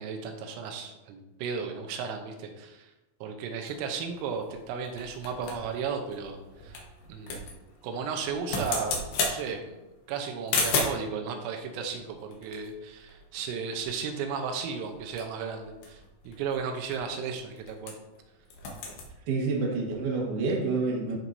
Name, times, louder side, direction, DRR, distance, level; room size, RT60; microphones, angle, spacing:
voice 1, 0.0-2.9 3.2-6.4 6.6-7.5 7.8-9.0 9.3-9.7 10.1-17.9, right 6 dB, 85° right, 4 dB, 3.5 m, -34 dB
sound 1, 3.7-11.1 11.9-13.5 13.8-13.9 14.2-14.5 14.9-18.2 18.4-19.1, left 3 dB, 70° left, 2.4 m, -35 dB
voice 2, 19.3-21.2, right 3 dB, 65° right, -2 dB, 2.0 m, -28 dB
13.0 x 4.6 x 2.7 m, 1.0 s
omnidirectional pair, 5.8 m